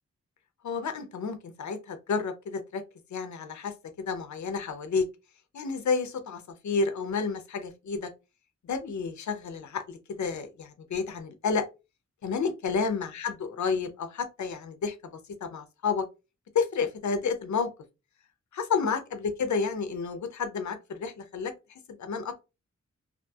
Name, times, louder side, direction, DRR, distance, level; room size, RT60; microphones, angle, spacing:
voice 1, 0.6-2.8 3.1-5.1 5.5-8.1 8.6-11.6 12.2-15.0 15.4-16.1 16.5-17.7 18.5-21.5 22.0-22.3, left 5 dB, 75° left, 0.5 m, -30 dB
2.6 x 2.5 x 2.3 m
wide cardioid pair, 115°, 29 cm